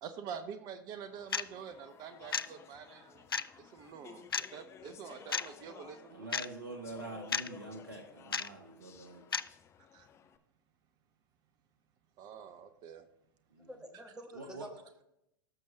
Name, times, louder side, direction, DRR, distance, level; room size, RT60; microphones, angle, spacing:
voice 1, 0.0-3.3 3.6-6.3 9.9-10.1 12.2-13.0, right 7 dB, 35° right, 10 dB, 0.8 m, -46 dB
Speech / Chatter, 1.0-10.4, left 7 dB, 25° left, 0.8 m, -56 dB
sound 1, 1.3-1.4 2.3-2.5 3.3-3.5 4.3-4.5 5.3-5.5 6.3-6.5 7.3-7.5 8.3-8.5 9.3-9.5, left 6 dB, 85° left, 0.4 m, -32 dB
voice 2, 6.1-9.3 13.5-13.8 14.3-14.7, right 2 dB, 75° right, 2 dB, 1.6 m, -45 dB
voice 3, 13.6-15.0, equal, 5° right, 5 dB, 1.5 m, -49 dB
19.0 x 6.3 x 2.8 m, 0.84 s
figure-of-eight pair, 95°, 12 cm